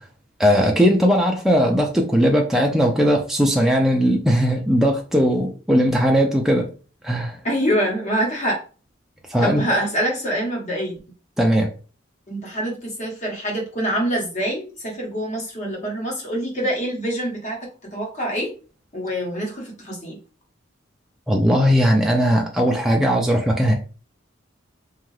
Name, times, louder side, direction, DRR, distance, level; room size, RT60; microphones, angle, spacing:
voice 1, 0.4-6.7 7.0-7.4 9.3-9.8 11.4-11.7 21.3-23.7, equal, ahead, 0 dB, 0.4 m, -18 dB
voice 2, 7.4-8.6 9.4-11.0 12.3-18.5 18.9-20.2, equal, 40° left, -1 dB, 1.0 m, -25 dB
2.7 x 2.4 x 3.1 m, 0.37 s
head